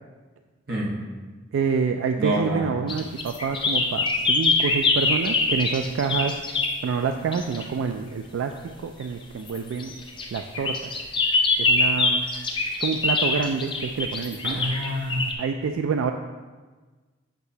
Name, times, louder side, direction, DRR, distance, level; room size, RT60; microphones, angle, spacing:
voice 1, 0.7-1.0 2.2-2.7 14.4-15.2, equal, 50° right, -3 dB, 1.2 m, -27 dB
voice 2, 1.5-6.4 6.8-8.5 8.8-9.9 10.3-10.8 11.6-12.3 12.8-14.7 15.4-16.1, right 5 dB, 85° right, 6 dB, 0.3 m, -27 dB
sound 1, 2.9-6.8 7.3-7.6 9.5-15.3, left 3 dB, 25° left, 0.6 m, -24 dB
8.1 x 5.6 x 2.8 m, 1.3 s
head